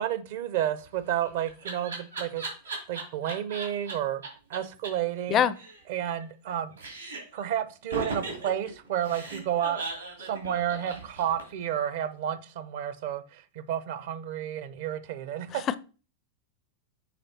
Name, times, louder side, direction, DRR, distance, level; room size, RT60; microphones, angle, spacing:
voice 1, 0.0-2.4 2.9-4.2 4.5-5.5 5.9-6.7 7.3-9.8 10.2-15.6, right 10 dB, 50° right, 0.7 m, -31 dB
Laughter, 0.8-3.9 4.2-4.3 4.5-4.6 4.8-4.9 5.2-6.5 6.8-7.4 7.9-11.7, right 3 dB, 75° right, 2.5 m, -37 dB
voice 2, 5.3-5.5 15.5-15.8, left 10 dB, 30° left, 0.5 m, -24 dB
8.5 x 3.3 x 4.2 m
figure-of-eight pair, 90°, 0 cm